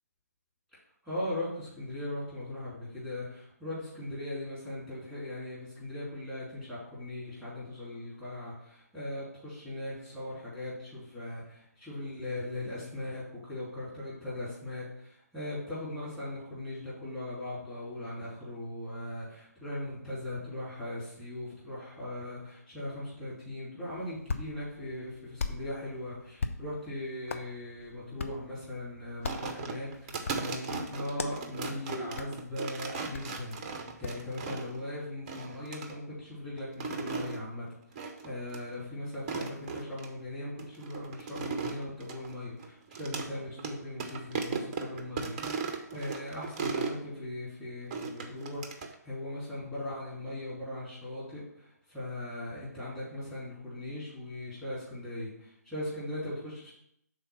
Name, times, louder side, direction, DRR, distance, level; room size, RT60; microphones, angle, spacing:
voice 1, 1.0-45.4 45.7-56.7, left 1 dB, 5° left, -9 dB, 2.7 m, -39 dB
Hands, 23.9-34.3, left 4 dB, 50° left, 0.6 m, -42 dB
cutting up a soda bottle, 29.3-34.8 35.3-35.9 36.6-37.4 38.0-38.3 38.5-38.6 39.1-40.1 40.6-43.3 43.6-43.7 44.0-47.0 47.9-48.9, right 5 dB, 25° right, 0.6 m, -37 dB
5.7 x 3.9 x 5.7 m, 0.72 s
figure-of-eight pair, 140°, 9 cm